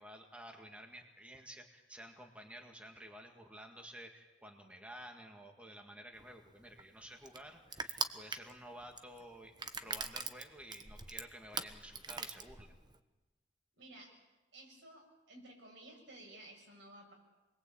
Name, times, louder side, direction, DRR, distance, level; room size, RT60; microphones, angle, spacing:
voice 1, 0.0-9.5 9.8-12.8, equal, 5° right, 3 dB, 2.0 m, -52 dB
Crushing, 6.2-13.0, right 4 dB, 25° right, 1.2 m, -42 dB
voice 2, 13.8-14.1 14.5-17.1, right 1 dB, 75° right, 1 dB, 7.7 m, -55 dB
27.5 x 21.5 x 8.7 m, 1.1 s
head